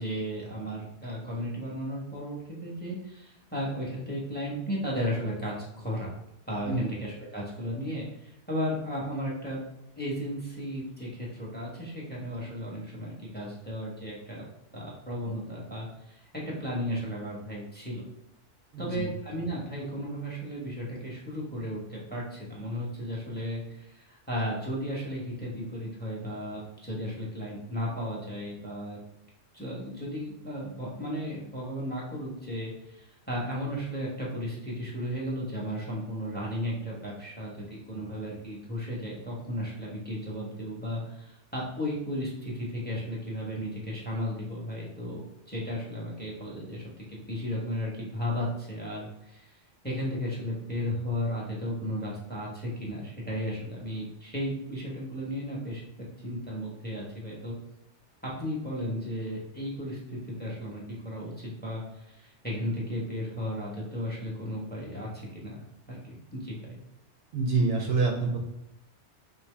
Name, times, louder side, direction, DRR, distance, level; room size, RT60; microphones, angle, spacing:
voice 1, 0.0-5.5 5.8-6.1 6.5-9.6 10.0-14.5 14.7-18.0 18.8-29.0 29.5-46.8 47.3-49.5 49.8-55.8 56.2-57.5 58.2-65.6 65.9-66.8, equal, 10° left, -4 dB, 0.9 m, -34 dB
voice 2, 18.7-19.1 67.3-68.4, right 3 dB, 65° right, 1 dB, 0.8 m, -26 dB
5.3 x 2.2 x 3.3 m, 0.84 s
omnidirectional pair, 1.2 m